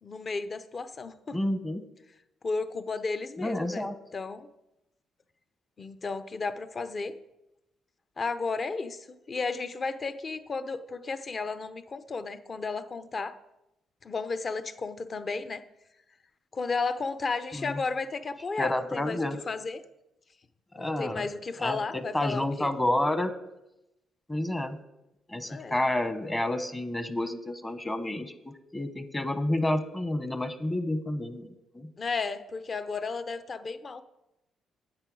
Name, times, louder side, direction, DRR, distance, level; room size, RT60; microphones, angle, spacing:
voice 1, 0.0-1.4 2.4-3.8 4.1-4.5 5.8-7.1 8.2-13.3 14.0-15.6 16.5-19.8 20.8-22.7 25.4-25.8 32.0-34.0, left 4 dB, 40° left, 12 dB, 0.8 m, -33 dB
voice 2, 1.3-1.8 3.4-3.9 17.5-17.8 18.6-19.4 20.7-21.2 21.6-23.3 24.3-24.8 25.3-31.9, left 1 dB, 15° left, 10 dB, 1.0 m, -30 dB
8.8 x 8.4 x 6.2 m, 0.92 s
cardioid pair, 90°, 0 cm